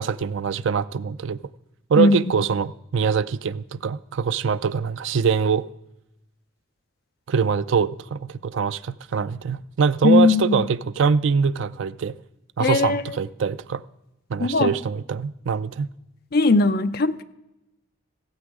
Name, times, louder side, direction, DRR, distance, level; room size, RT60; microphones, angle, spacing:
voice 1, 0.0-1.4 1.9-5.7 7.3-12.2 12.6-13.8 14.3-15.9, right 6 dB, 65° right, 0.4 m, -23 dB
voice 2, 10.0-10.6 12.6-13.0 14.4-14.7 16.3-17.2, left 3 dB, 50° left, 0.5 m, -18 dB
16.5 x 7.9 x 4.8 m
head